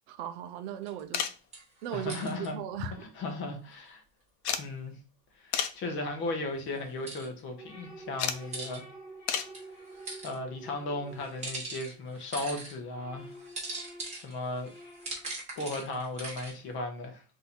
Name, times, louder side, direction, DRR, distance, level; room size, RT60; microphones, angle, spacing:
voice 1, 0.1-1.3 1.8-2.9, right 11 dB, 45° right, 0.5 m, -38 dB
sound 1, 0.8-1.0 1.5-2.5 6.7-7.3 8.3-8.8 9.5-10.4 11.2-12.7 13.3-16.5, right 2 dB, 15° right, 1.1 m, -41 dB
sound 2, 1.1-1.5 2.7-3.3 3.6-3.7 4.4-4.7 5.5-5.8 6.5-6.8 8.2-8.4 9.3-9.6 11.2-11.3 12.7-12.8 13.0-13.1, left 8 dB, 85° left, 0.7 m, -32 dB
voice 2, 1.9-2.6 3.0-4.0 4.6-4.9 5.4-8.8 10.2-13.4 14.1-14.7 15.6-17.2, left 2 dB, 25° left, 0.8 m, -36 dB
sound 3, 7.6-12.2 12.6-15.4, right 2 dB, 10° left, 0.4 m, -49 dB
3.8 x 2.8 x 4.2 m
supercardioid pair, 170°, 46 cm